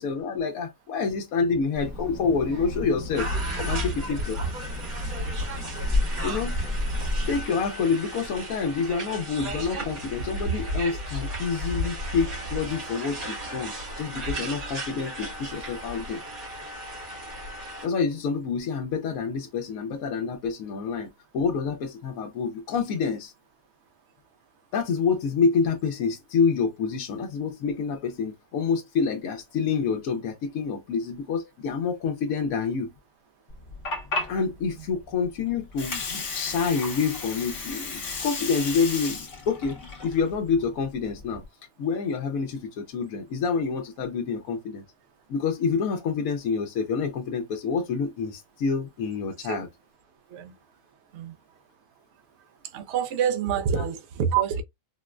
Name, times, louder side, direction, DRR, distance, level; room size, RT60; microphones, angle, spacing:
voice 1, 0.0-3.3 3.5-4.4 6.2-6.6 7.3-16.2 17.8-23.3 24.7-32.9 34.3-39.8 40.0-41.4 41.8-44.8 45.3-49.7, left 5 dB, 80° left, 1.1 m, -27 dB
Child speech kid speaking, 1.7-7.4, left 2 dB, 15° right, 0.8 m, -31 dB
sound 1, 3.1-17.9, right 1 dB, 90° right, 2.5 m, -33 dB
Water, 33.5-41.4, left 3 dB, 60° left, 1.3 m, -34 dB
voice 2, 52.6-54.6, right 8 dB, 65° right, 0.8 m, -27 dB
4.4 x 2.1 x 2.4 m
omnidirectional pair, 1.4 m